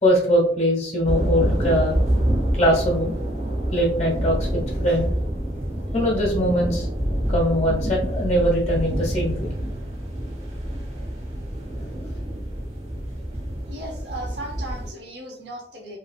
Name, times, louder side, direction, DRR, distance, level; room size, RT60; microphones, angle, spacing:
voice 1, 0.0-2.0 2.5-3.1 3.7-5.1 5.9-6.9 7.3-9.5, equal, 40° left, -2 dB, 1.1 m, -22 dB
sound 1, 1.0-14.9, right 1 dB, 40° right, 0.7 m, -27 dB
voice 2, 13.7-16.0, right 1 dB, 70° right, 1 dB, 0.9 m, -36 dB
3.1 x 2.4 x 2.4 m, 0.66 s
head